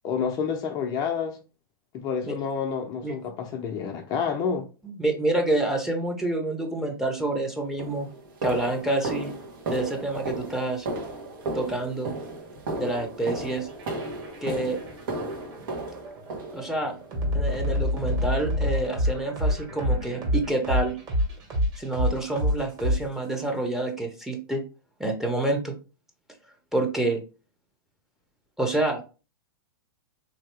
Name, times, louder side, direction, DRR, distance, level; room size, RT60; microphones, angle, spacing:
voice 1, 0.0-1.4 1.9-4.7, left 6 dB, 35° left, 0.5 m, -29 dB
voice 2, 4.8-8.1 8.4-9.3 9.7-10.9 11.5-12.1 12.8-13.7 14.4-14.8 16.5-17.0 17.3-21.0 21.8-24.6 25.0-25.7 26.7-27.2 28.6-29.0, right 2 dB, 5° right, 0.8 m, -27 dB
sound 1, 7.1-7.2 7.8-17.0 17.5-17.8 18.1-18.3 18.7-18.9 19.3-19.4 19.9-20.0, right 2 dB, 60° right, 1.2 m, -35 dB
sound 2, 13.7-23.5, left 1 dB, 30° right, 1.7 m, -27 dB
3.5 x 2.8 x 3.3 m
hypercardioid pair, 110°, 12 cm